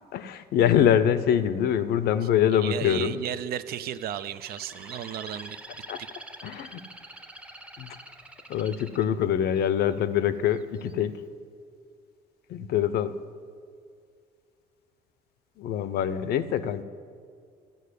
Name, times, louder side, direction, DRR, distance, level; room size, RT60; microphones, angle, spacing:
voice 1, 0.1-3.2 5.9-6.0 6.4-6.8 7.8-7.9 8.5-11.2 12.5-13.2 15.6-16.8, left 9 dB, 70° left, 13 dB, 0.6 m, -24 dB
voice 2, 2.6-5.6 6.0-6.1, right 11 dB, 65° right, 14 dB, 0.5 m, -34 dB
Bird, 4.0-10.0 10.6-11.0, right 1 dB, 5° right, 0.7 m, -45 dB
12.5 x 5.3 x 8.3 m, 2.2 s
cardioid pair, 110°, 17 cm